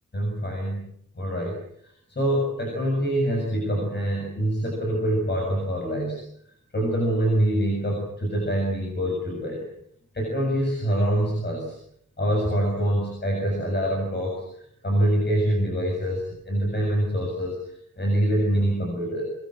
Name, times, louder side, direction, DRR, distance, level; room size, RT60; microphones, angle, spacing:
voice 1, 0.1-0.9 1.2-1.6 2.1-6.2 6.7-9.6 10.1-11.8 12.2-14.4 14.8-17.6 18.0-19.2, right 1 dB, 30° left, 1 dB, 7.0 m, -25 dB
25.0 x 22.0 x 7.7 m, 0.71 s
wide cardioid pair, 165°, 33 cm